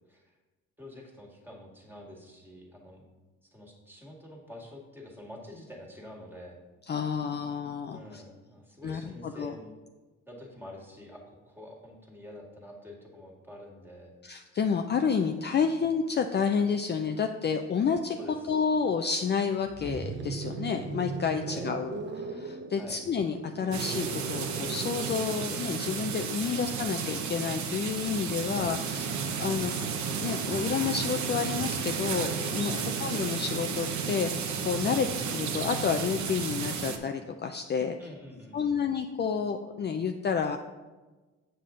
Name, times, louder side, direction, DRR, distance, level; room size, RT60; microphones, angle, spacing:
voice 1, 0.8-3.0 3.5-6.6 7.9-9.7 10.3-14.1 18.2-18.6 21.5-21.7 22.8-23.0 26.4-26.7 28.4-28.7 29.4-29.6 32.8-33.1 34.9-35.1 38.0-38.8, left 1 dB, 5° right, -1 dB, 1.9 m, -47 dB
voice 2, 6.9-8.2 8.8-9.5 14.2-18.2 18.5-29.7 30.2-38.0 38.5-40.6, left 6 dB, 35° left, 5 dB, 0.4 m, -30 dB
sound 1, 19.6-31.6 32.8-36.4, right 4 dB, 40° right, 0.8 m, -42 dB
sound 2, 23.7-37.0, right 6 dB, 70° right, 0.9 m, -33 dB
7.6 x 6.8 x 3.8 m, 1.2 s
cardioid pair, 90°, 30 cm